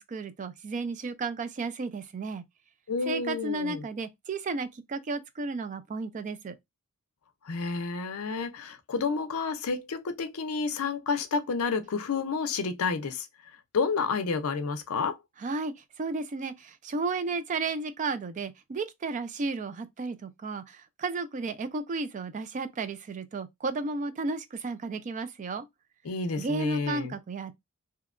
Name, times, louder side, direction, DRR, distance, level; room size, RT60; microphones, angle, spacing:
voice 1, 0.0-2.4 3.1-6.6 15.4-25.7 26.4-27.6, right 3 dB, 35° right, 0.3 m, -33 dB
voice 2, 2.9-3.8 7.5-13.3 13.7-15.2 26.0-27.1, left 4 dB, 65° left, 0.5 m, -30 dB
2.7 x 2.1 x 2.4 m
head